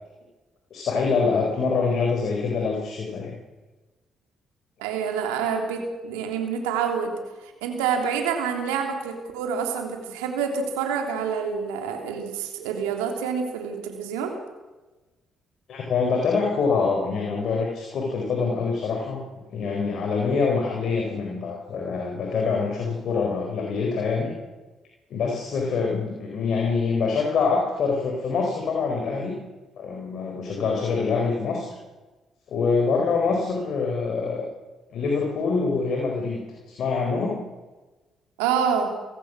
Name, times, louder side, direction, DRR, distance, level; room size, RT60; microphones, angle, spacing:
voice 1, 0.7-3.3 15.7-19.2 19.5-24.3 25.1-29.4 29.8-31.8 32.5-34.5 34.9-36.4 36.7-37.4, left 4 dB, 65° left, 1 dB, 4.3 m, -25 dB
voice 2, 4.8-7.1 7.4-14.4 30.6-30.7 38.4-38.9, right 6 dB, 85° right, 3 dB, 3.3 m, -27 dB
28.5 x 15.5 x 6.3 m, 1.2 s
hypercardioid pair, 50°, 0 cm